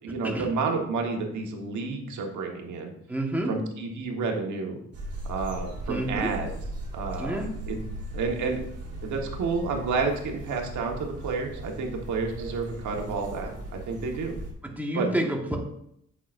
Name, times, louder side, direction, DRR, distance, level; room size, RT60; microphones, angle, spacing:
voice 1, 0.0-2.9 3.5-4.8 5.3-6.5 6.9-7.8 8.1-8.6 9.0-14.3 14.9-15.1, right 4 dB, 75° right, 2 dB, 1.4 m, -30 dB
voice 2, 3.1-3.5 5.9-6.3 7.2-7.5 14.6-15.6, right 1 dB, 5° right, 0 dB, 1.4 m, -29 dB
sound 1, 4.9-14.5, right 1 dB, 55° right, 2.0 m, -38 dB
8.4 x 5.9 x 2.6 m, 0.73 s
cardioid pair, 90°, 30 cm